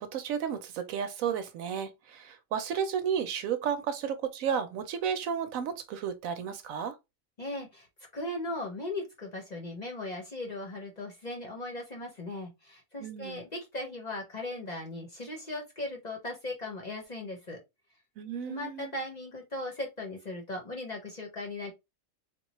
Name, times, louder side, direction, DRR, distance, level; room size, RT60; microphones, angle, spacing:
voice 1, 0.0-7.0 13.0-13.4 18.2-18.9, right 7 dB, 75° right, 1.0 m, -33 dB
voice 2, 7.4-7.9 8.1-17.6 18.5-21.7, left 2 dB, 40° left, 0.7 m, -38 dB
3.7 x 2.2 x 3.0 m
omnidirectional pair, 1.5 m